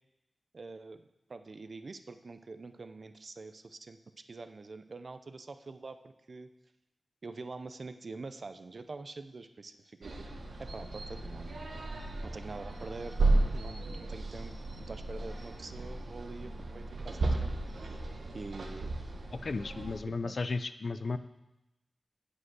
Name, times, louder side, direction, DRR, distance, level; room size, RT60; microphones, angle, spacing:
voice 1, 0.5-4.0 4.3-6.5 7.2-10.3 10.6-11.6 12.2-13.2 13.5-17.5 17.8-18.0 18.3-19.0 20.2-20.4, right 3 dB, 55° right, 9 dB, 0.7 m, -45 dB
sound 1, 10.0-20.0, right 2 dB, 80° right, 1.2 m, -34 dB
voice 2, 19.4-21.2, left 3 dB, 60° left, 11 dB, 0.5 m, -34 dB
8.3 x 7.8 x 6.2 m, 0.93 s
wide cardioid pair, 90°, 0 cm